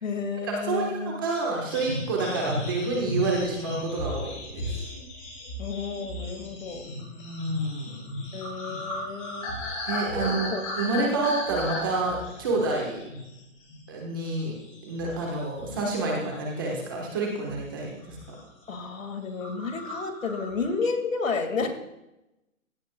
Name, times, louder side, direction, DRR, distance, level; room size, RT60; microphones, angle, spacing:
voice 1, 0.0-1.2 5.6-6.8 8.3-9.5 10.1-10.6 11.0-11.2 18.7-21.7, left 4 dB, 70° left, 5 dB, 2.3 m, -31 dB
voice 2, 0.7-4.7 7.1-8.0 9.9-10.5 10.7-13.0 13.9-14.5 14.8-18.3, right 3 dB, 15° right, -1 dB, 1.3 m, -28 dB
sound 1, 1.7-13.4 13.7-14.0 14.4-15.9 16.2-17.0 17.5-17.7 18.0-18.4 18.7-18.8 19.0-19.1 19.4-20.8, left 1 dB, 25° left, 4.8 m, -36 dB
16.5 x 13.5 x 2.3 m, 0.93 s
hypercardioid pair, 175°, 41 cm